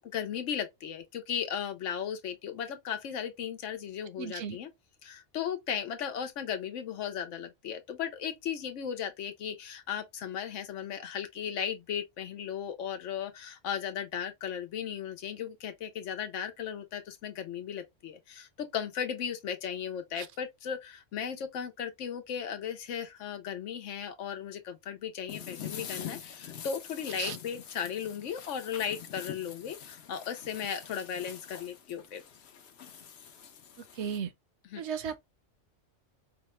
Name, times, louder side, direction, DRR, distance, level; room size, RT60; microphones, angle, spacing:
voice 1, 0.0-4.7 5.0-32.2 34.7-34.8, left 8 dB, 85° left, 1.0 m, -36 dB
voice 2, 4.2-4.6 20.2-20.3 27.2-27.4 34.0-34.3 34.8-35.2, right 7 dB, 70° right, 0.9 m, -35 dB
sound 1, 25.3-34.2, left 8 dB, 65° left, 0.9 m, -45 dB
4.9 x 2.2 x 3.0 m
omnidirectional pair, 1.2 m